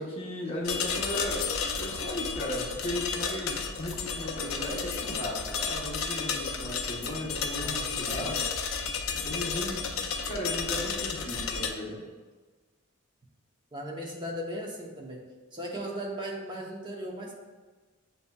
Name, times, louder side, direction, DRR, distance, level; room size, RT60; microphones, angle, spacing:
voice 1, 0.0-8.4 9.1-9.9 10.3-12.1, left 1 dB, 30° left, -5 dB, 0.8 m, -36 dB
sound 1, 0.6-11.7, left 5 dB, 70° left, 0.5 m, -32 dB
voice 2, 7.6-8.4 13.7-15.3 15.5-17.3, equal, 20° right, -2 dB, 0.7 m, -37 dB
7.4 x 2.7 x 2.3 m, 1.3 s
head